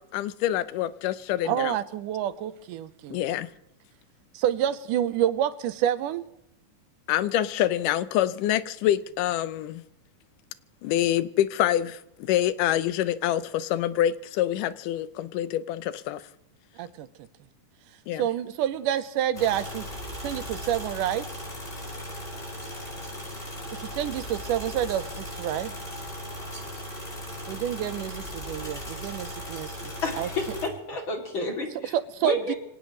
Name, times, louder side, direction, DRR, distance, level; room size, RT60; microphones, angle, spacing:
voice 1, 0.0-1.8 3.1-3.5 7.1-9.8 10.8-16.2 18.1-18.2, left 12 dB, 85° left, 2.3 m, -26 dB
voice 2, 1.5-3.2 4.3-6.3 16.8-17.1 18.2-19.9 20.2-21.3 23.7-25.8 27.5-30.3 31.9-32.5, right 11 dB, 85° right, 2.3 m, -28 dB
sound 1, 19.3-30.7, equal, 15° left, 5.8 m, -37 dB
voice 3, 30.0-31.9 32.2-32.6, left 2 dB, 40° left, 3.2 m, -30 dB
26.0 x 17.5 x 3.1 m
omnidirectional pair, 3.7 m